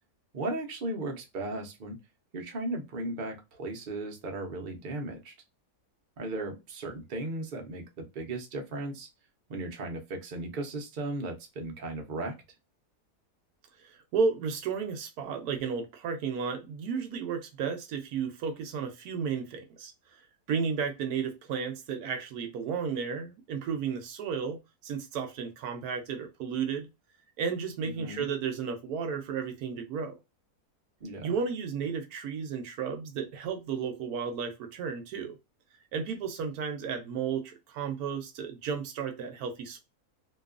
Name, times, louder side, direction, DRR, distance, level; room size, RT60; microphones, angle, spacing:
voice 1, 0.3-2.0 2.3-5.3 6.2-9.1 9.5-12.3 27.8-28.3 31.0-31.3, right 2 dB, 50° right, 0.6 m, -36 dB
voice 2, 13.8-19.9 20.5-26.9 27.4-30.2 31.2-35.4 35.9-39.8, right 6 dB, 75° right, 1.1 m, -33 dB
2.9 x 2.3 x 2.3 m
omnidirectional pair, 1.7 m